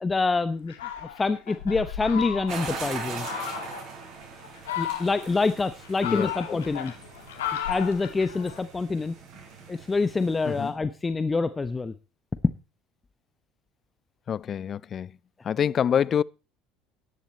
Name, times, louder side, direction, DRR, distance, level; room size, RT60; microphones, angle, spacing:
voice 1, 0.0-3.3 4.8-6.9 7.7-9.1 9.7-11.9, left 3 dB, 20° left, 0.9 m, -26 dB
Fowl, 0.7-2.8 3.2-3.9 4.4-5.4 5.8-8.6, left 9 dB, 90° left, 2.7 m, -34 dB
sound 1, 2.5-10.7, right 5 dB, 60° right, 6.5 m, -41 dB
voice 2, 6.0-6.6 10.5-10.7 14.3-15.1 15.4-16.2, left 8 dB, 40° left, 0.5 m, -26 dB
14.5 x 10.5 x 4.4 m
hypercardioid pair, 80°, 0 cm